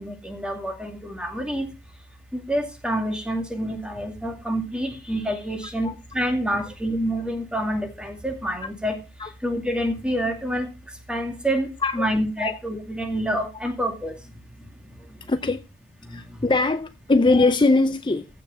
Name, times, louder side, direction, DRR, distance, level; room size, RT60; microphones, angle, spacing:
voice 1, 0.0-1.7 2.3-9.0 9.4-10.7 11.1-11.7 11.9-14.1 16.1-16.2, equal, 5° right, 2.4 m, -27 dB
voice 2, 15.3-15.6 16.1-18.3, left 3 dB, 25° left, 0.5 m, -21 dB
15.0 x 6.0 x 5.3 m
head